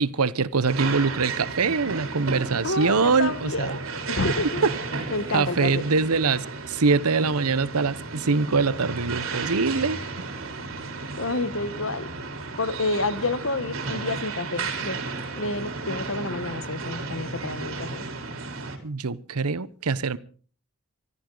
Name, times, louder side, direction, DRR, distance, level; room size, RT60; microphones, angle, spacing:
voice 1, 0.0-3.8 4.6-10.0 18.8-20.2, right 4 dB, 90° right, 0.9 m, -24 dB
sound 1, 0.7-18.8, right 3 dB, 70° right, 3.5 m, -34 dB
voice 2, 2.6-3.8 4.1-4.6 5.1-5.8 11.1-12.1 12.6-15.0 15.3-18.0, left 2 dB, 65° left, 1.2 m, -29 dB
24.5 x 13.5 x 3.9 m
head